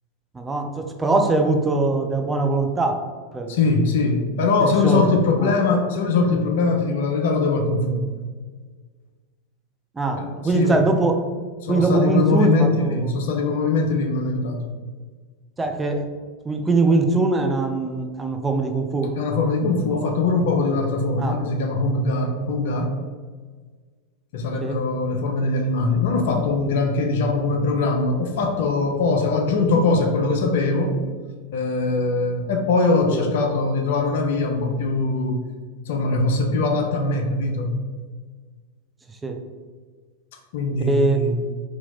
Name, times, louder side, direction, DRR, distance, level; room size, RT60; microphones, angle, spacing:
voice 1, 0.3-3.0 3.3-3.6 4.6-5.1 5.4-5.5 10.0-11.1 11.7-13.0 15.6-16.1 16.4-19.2 19.9-20.2 21.2-21.4 24.6-24.8 33.1-33.2 39.2-39.4 40.8-41.3, right 3 dB, 15° right, 4 dB, 0.5 m, -22 dB
voice 2, 3.5-8.1 10.2-10.8 11.6-14.6 19.2-22.9 24.3-30.9 31.5-35.4 35.9-37.8 40.5-41.3, left 3 dB, 60° left, 2 dB, 0.5 m, -21 dB
3.0 x 2.8 x 3.9 m, 1.5 s
figure-of-eight pair, 90°, 0 cm